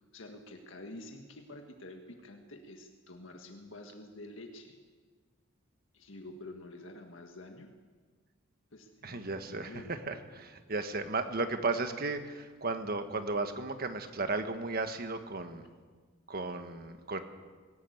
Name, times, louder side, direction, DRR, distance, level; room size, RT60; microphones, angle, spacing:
voice 1, 0.1-4.8 5.9-7.7 8.7-9.9, left 1 dB, 70° left, 3 dB, 1.7 m, -48 dB
voice 2, 9.0-15.7 16.3-17.2, right 3 dB, 50° right, 8 dB, 1.5 m, -35 dB
19.0 x 17.5 x 8.0 m, 1.5 s
head